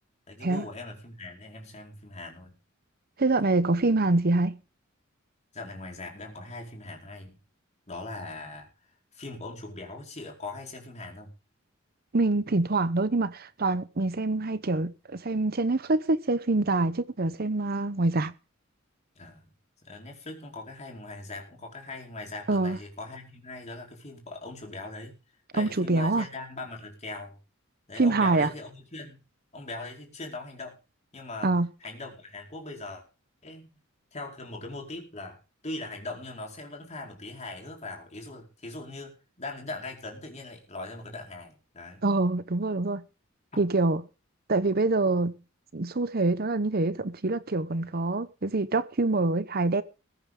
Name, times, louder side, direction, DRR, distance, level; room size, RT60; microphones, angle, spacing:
voice 1, 0.3-2.6 5.5-7.4 7.9-11.3 19.1-19.4 19.8-25.1 25.5-27.4 27.9-29.2 29.5-30.8 31.1-31.5 31.8-33.0 33.4-33.7 34.1-42.0 43.5-43.6, left 2 dB, 35° left, 4.8 m, -40 dB
voice 2, 3.2-4.6 12.1-18.3 22.5-22.8 25.6-26.3 28.0-28.5 31.4-31.7 42.0-43.0 43.6-44.0 44.5-45.3 45.7-49.8, right 2 dB, 50° right, 0.9 m, -25 dB
21.0 x 9.2 x 3.8 m
head